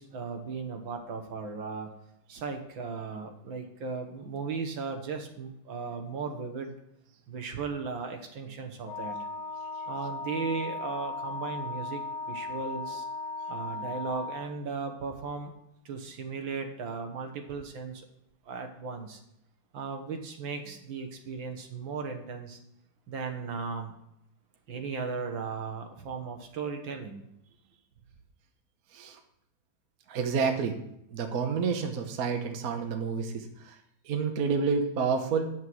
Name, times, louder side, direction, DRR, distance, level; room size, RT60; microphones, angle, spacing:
voice 1, 0.0-1.9 2.3-6.7 7.3-9.2 9.9-12.0 12.3-13.1 13.5-15.5 15.9-18.1 18.5-19.2 19.7-22.6 23.1-23.9 24.7-27.3, right 5 dB, 70° right, 5 dB, 2.0 m, -36 dB
Wind instrument woodwind instrument, 8.8-14.6, left 3 dB, 65° left, 1.7 m, -37 dB
voice 2, 30.1-30.8 31.1-33.4 34.1-35.5, right 5 dB, 50° right, 5 dB, 1.3 m, -29 dB
9.6 x 6.1 x 6.1 m, 0.78 s
omnidirectional pair, 2.3 m